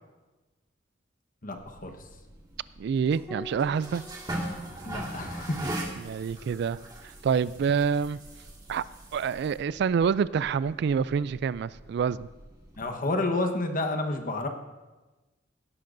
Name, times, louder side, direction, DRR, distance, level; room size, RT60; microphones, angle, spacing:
voice 1, 1.4-1.9 4.8-5.7 12.8-14.5, left 2 dB, 50° left, 5 dB, 1.2 m, -30 dB
sound 1, 1.6-12.8, right 1 dB, 25° right, 2.0 m, -41 dB
voice 2, 2.8-4.0 6.0-6.8 7.2-8.2 8.7-8.8 9.1-12.3, right 6 dB, 65° right, 18 dB, 0.3 m, -27 dB
Piano, 3.3-8.1 9.8-10.6, left 1 dB, ahead, 0.7 m, -50 dB
17.0 x 11.5 x 2.6 m, 1.2 s
head